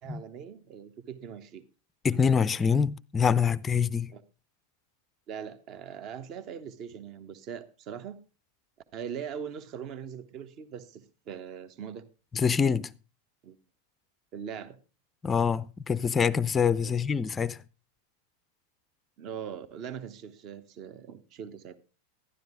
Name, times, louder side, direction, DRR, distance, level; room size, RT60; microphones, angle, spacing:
voice 1, 0.0-1.6 4.1-4.2 5.3-8.2 8.9-12.0 13.4-13.6 14.3-14.8 16.8-17.3 19.2-21.8, right 8 dB, 40° right, 1.0 m, -41 dB
voice 2, 2.0-4.1 12.3-12.9 15.2-17.6, left 6 dB, 20° left, 0.5 m, -25 dB
12.0 x 11.5 x 3.7 m
figure-of-eight pair, 90°, 0 cm